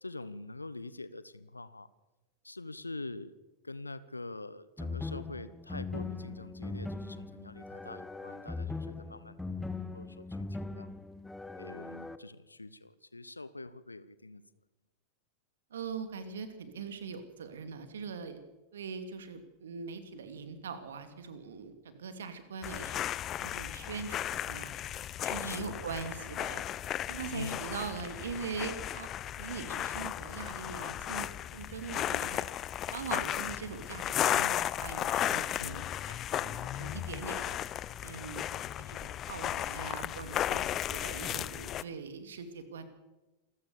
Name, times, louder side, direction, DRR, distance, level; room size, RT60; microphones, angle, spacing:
voice 1, 0.0-1.9 2.4-3.3 3.6-9.4 9.9-10.9 11.6-14.4 25.4-25.9 27.3-27.8 35.6-35.9, left 2 dB, 80° left, 15 dB, 1.1 m, -44 dB
sound 1, 4.8-12.2, left 3 dB, 5° left, 1.1 m, -40 dB
voice 2, 15.7-18.4 18.7-23.0 23.4-24.7 25.2-26.6 27.1-29.1 29.4-32.5 32.9-37.6 38.0-38.5 38.8-42.8, right 5 dB, 65° right, 10 dB, 2.6 m, -42 dB
sound 2, 22.6-41.8, left 11 dB, 30° left, 0.6 m, -35 dB
27.5 x 14.5 x 6.9 m, 1.1 s
figure-of-eight pair, 90°, 0 cm